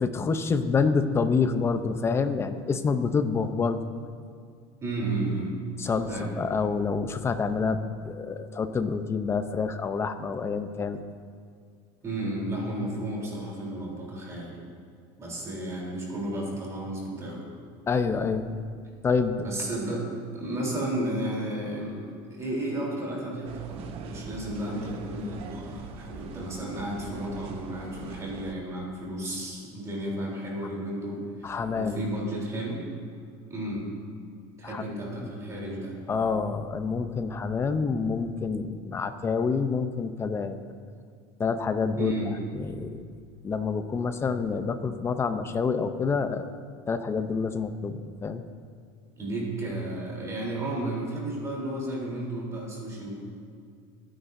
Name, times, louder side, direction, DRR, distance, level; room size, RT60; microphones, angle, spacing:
voice 1, 0.0-3.8 5.8-6.1 6.4-11.0 17.9-18.5 19.0-19.4 31.4-32.0 34.6-34.8 35.2-35.3 36.1-40.6 41.4-42.1 42.5-43.0 43.4-46.5 46.9-48.4, left 5 dB, 20° left, 9 dB, 0.6 m, -27 dB
voice 2, 4.8-5.5 6.1-6.3 12.0-14.6 15.2-17.4 19.4-20.1 20.3-32.8 33.5-33.9 34.6-36.0 42.0-42.3 49.2-53.2, right 1 dB, 20° right, -3 dB, 3.4 m, -33 dB
sound 1, 23.4-28.5, right 5 dB, 45° right, 0.9 m, -43 dB
25.5 x 10.0 x 2.7 m, 2.2 s
cardioid pair, 145°, 13 cm